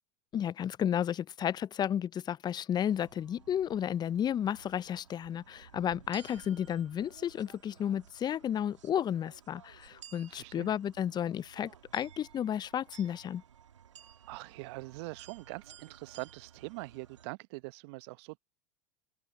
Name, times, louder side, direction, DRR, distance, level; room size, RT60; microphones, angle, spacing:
voice 1, 0.3-13.4, left 9 dB, 30° left, 0.5 m, -32 dB
sound 1, 2.8-17.3, right 9 dB, 90° right, 2.0 m, -56 dB
voice 2, 10.3-10.7 14.3-18.4, right 24 dB, 65° right, 0.9 m, -43 dB
open air
hypercardioid pair, 85°, 15 cm